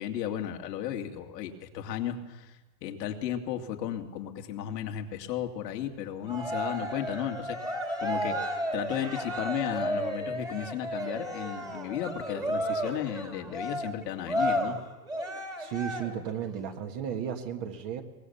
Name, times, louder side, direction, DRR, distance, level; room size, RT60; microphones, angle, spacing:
voice 1, 0.0-2.5 2.8-7.6 8.0-14.8, left 10 dB, 90° left, 4 dB, 2.5 m, -34 dB
Cheering, 6.3-16.3, equal, 10° right, 2.1 m, -33 dB
voice 2, 15.6-18.0, right 8 dB, 40° right, 5 dB, 1.8 m, -34 dB
23.5 x 19.5 x 7.0 m, 1.1 s
supercardioid pair, 170°, 48 cm